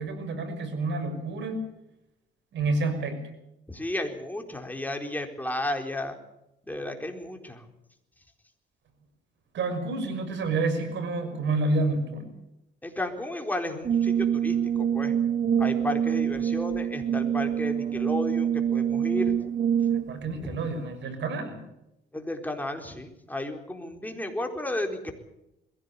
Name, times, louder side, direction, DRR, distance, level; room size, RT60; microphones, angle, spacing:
voice 1, 0.0-1.6 2.5-3.2 9.5-12.3 20.1-21.6, right 3 dB, 65° right, 7 dB, 6.1 m, -29 dB
voice 2, 3.7-6.2 6.7-7.7 12.8-15.1 15.6-19.4 20.3-20.6 22.1-25.1, left 1 dB, 10° left, 4 dB, 4.2 m, -33 dB
Brass instrument, 13.8-20.2, right 9 dB, 40° right, 0.8 m, -26 dB
21.5 x 16.5 x 8.4 m, 0.86 s
cardioid pair, 90°, 20 cm